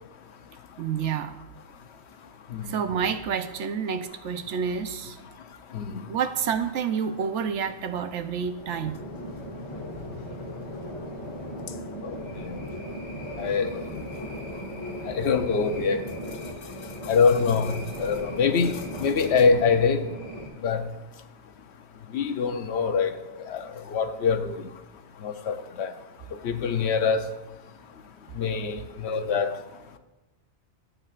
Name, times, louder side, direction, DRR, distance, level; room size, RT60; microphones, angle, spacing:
voice 1, 0.8-1.3 2.6-5.2 6.1-9.0, right 7 dB, 80° right, 1.0 m, -29 dB
sound 1, 8.4-20.5, equal, 85° left, 2.2 m, -37 dB
voice 2, 13.4-13.8 15.1-16.0 17.1-20.0 20.6-20.8 22.1-23.1 23.5-23.6 23.9-24.6 25.2-25.9 26.4-27.3 28.4-29.5, left 5 dB, 70° left, 1.0 m, -24 dB
13.0 x 8.7 x 2.4 m
omnidirectional pair, 1.2 m